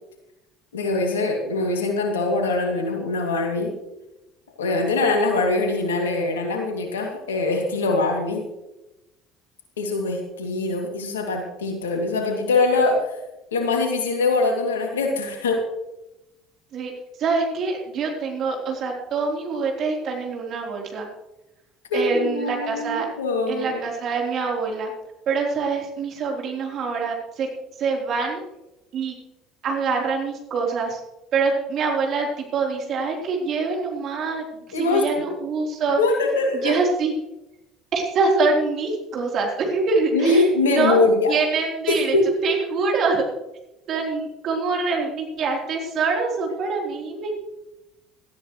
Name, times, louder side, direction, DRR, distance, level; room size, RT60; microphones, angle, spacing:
voice 1, 0.7-3.7 4.6-8.4 9.8-13.0 13.5-15.6 21.9-23.8 34.7-35.3 36.0-36.7 40.1-41.3 41.9-42.3, left 2 dB, 80° left, 2 dB, 2.6 m, -22 dB
voice 2, 17.2-21.1 21.9-23.1 23.5-24.9 25.3-27.5 27.8-28.4 28.9-29.2 29.6-31.0 31.3-36.0 36.5-37.1 37.9-41.0 41.3-42.2 42.4-43.2 43.9-47.3, right 4 dB, 50° right, 0 dB, 3.7 m, -25 dB
18.0 x 13.5 x 3.2 m, 0.95 s
hypercardioid pair, 60°, 0 cm